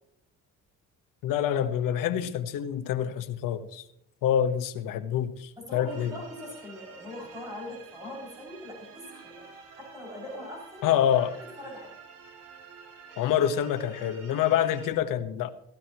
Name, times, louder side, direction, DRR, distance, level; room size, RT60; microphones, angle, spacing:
voice 1, 1.2-3.8 4.2-6.1 10.8-11.4 13.2-15.5, left 10 dB, 85° left, 1.2 m, -26 dB
voice 2, 5.6-9.4 9.7-11.0 11.4-11.9, left 1 dB, 10° right, 6.4 m, -41 dB
sound 1, 5.9-14.9, right 5 dB, 75° right, 3.6 m, -50 dB
16.0 x 15.5 x 3.0 m
cardioid pair, 175°, 32 cm